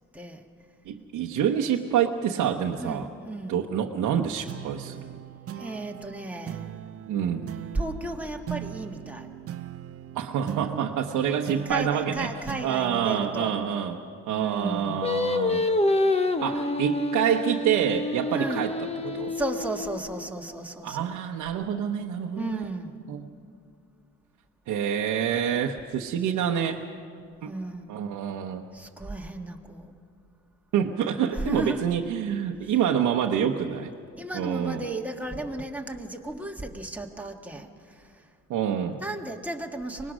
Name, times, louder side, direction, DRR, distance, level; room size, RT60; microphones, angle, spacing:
voice 1, 0.9-3.1 3.5-5.0 7.1-7.5 10.1-12.3 12.6-14.0 14.3-15.7 16.4-18.7 19.0-19.3 20.8-22.7 23.1-23.3 24.7-26.8 27.4-27.5 27.9-28.6 30.7-33.9 34.3-34.9 38.5-39.0, right 9 dB, 85° right, 0 dB, 1.0 m, -27 dB
voice 2, 2.8-3.6 5.6-6.6 7.7-9.3 11.7-13.6 14.3-15.1 18.3-18.7 19.2-21.1 22.4-23.0 27.4-27.9 28.7-29.9 31.3-31.8 34.2-38.1 39.0-40.1, right 2 dB, 5° right, 1 dB, 1.7 m, -34 dB
sound 1, 4.5-15.3, right 10 dB, 50° right, 0.7 m, -40 dB
Singing, 15.0-20.3, left 2 dB, 20° left, 1.0 m, -27 dB
24.5 x 20.0 x 6.2 m, 2.3 s
cardioid pair, 90°, 30 cm